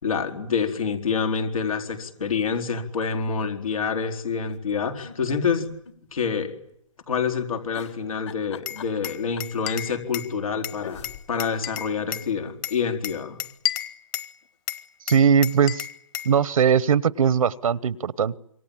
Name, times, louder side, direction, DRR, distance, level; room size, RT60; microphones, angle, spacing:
voice 1, 0.0-5.7 6.1-6.5 7.1-13.4, left 6 dB, 90° left, 4 dB, 4.5 m, -27 dB
sound 1, 4.4-6.3 6.6-6.7 7.7-9.6 10.5-10.6 10.8-12.6 13.0-13.1 13.3-13.4, left 7 dB, 60° left, 2.2 m, -44 dB
Glass, 8.7-10.3 10.6-12.3 12.6-14.3 14.7-16.3, left 11 dB, 20° left, 1.0 m, -32 dB
voice 2, 15.1-15.9 16.2-18.4, right 7 dB, 85° right, 19 dB, 1.2 m, -20 dB
26.5 x 24.0 x 8.8 m, 0.73 s
hypercardioid pair, 155°, 17 cm